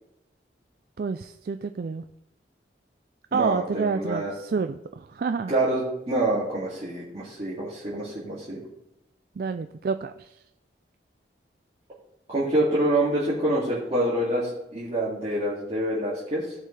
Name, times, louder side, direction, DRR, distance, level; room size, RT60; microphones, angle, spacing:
voice 1, 1.0-2.0 3.3-5.5 9.4-10.3, right 5 dB, 55° right, 8 dB, 0.3 m, -29 dB
voice 2, 3.3-4.3 5.5-8.6 12.3-16.5, right 1 dB, 35° right, -10 dB, 2.3 m, -26 dB
16.0 x 5.5 x 3.3 m, 0.87 s
head